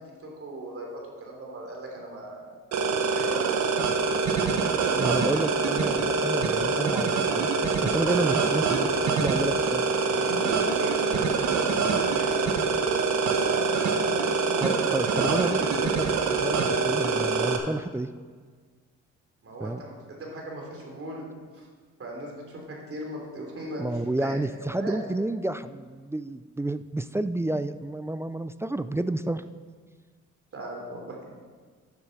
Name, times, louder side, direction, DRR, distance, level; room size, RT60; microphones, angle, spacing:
voice 1, 0.0-2.5 2.7-3.9 10.0-13.0 13.3-15.1 19.4-21.3 21.5-21.7 22.0-24.4 24.7-25.0 30.5-31.2, right 2 dB, 50° right, -1 dB, 3.3 m, -38 dB
sound 1, 2.7-17.6, right 4 dB, 70° right, 1.2 m, -25 dB
voice 2, 5.0-9.8 14.6-18.1 19.6-19.8 23.8-29.4, right 1 dB, 10° right, 12 dB, 0.3 m, -30 dB
10.0 x 7.2 x 6.5 m, 1.6 s
cardioid pair, 90°, 30 cm